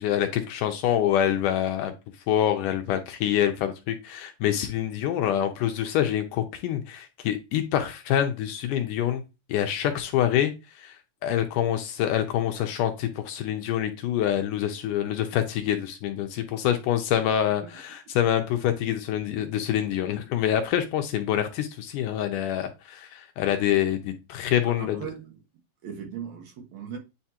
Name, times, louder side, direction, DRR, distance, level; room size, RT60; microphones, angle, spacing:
voice 1, 0.0-1.9 2.3-9.2 9.5-11.0 11.2-25.0, left 10 dB, 75° left, 6 dB, 2.1 m, -26 dB
voice 2, 24.7-25.4 25.8-27.0, right 8 dB, 65° right, 2 dB, 2.2 m, -38 dB
9.4 x 3.5 x 2.9 m, 0.27 s
omnidirectional pair, 4.0 m